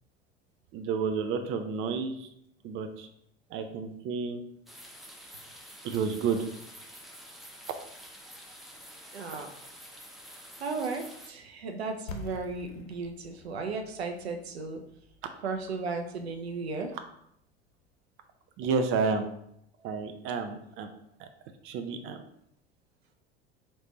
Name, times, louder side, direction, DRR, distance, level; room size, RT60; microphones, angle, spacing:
voice 1, 0.7-2.3 2.6-3.1 3.5-4.4 5.8-6.5 18.6-19.3 19.8-20.9 21.2-21.3 21.6-22.2, right 5 dB, 40° right, 7 dB, 0.5 m, -30 dB
sound 1, 4.7-11.3, equal, ahead, 0.7 m, -48 dB
voice 2, 9.1-9.5 10.6-14.8 15.4-16.9, right 4 dB, 80° right, 5 dB, 0.6 m, -35 dB
sound 2, 12.1-17.8, left 3 dB, 75° left, 0.7 m, -48 dB
4.2 x 3.3 x 3.1 m, 0.74 s
figure-of-eight pair, 70°, 31 cm